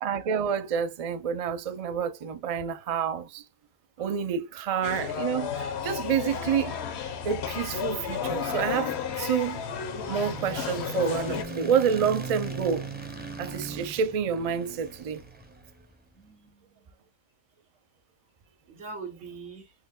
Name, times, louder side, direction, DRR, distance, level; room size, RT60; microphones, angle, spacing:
voice 1, 0.0-3.4 4.0-6.8 7.2-9.6 10.1-12.9 13.4-15.2, right 7 dB, 55° right, 0.4 m, -28 dB
voice 2, 4.0-4.3 16.1-16.9 18.7-19.7, right 4 dB, 85° right, 1.7 m, -43 dB
sound 1, 4.8-11.4, left 7 dB, 65° left, 0.9 m, -32 dB
sound 2, 7.7-15.9, right 3 dB, 10° right, 0.6 m, -40 dB
4.1 x 2.9 x 2.3 m
omnidirectional pair, 1.2 m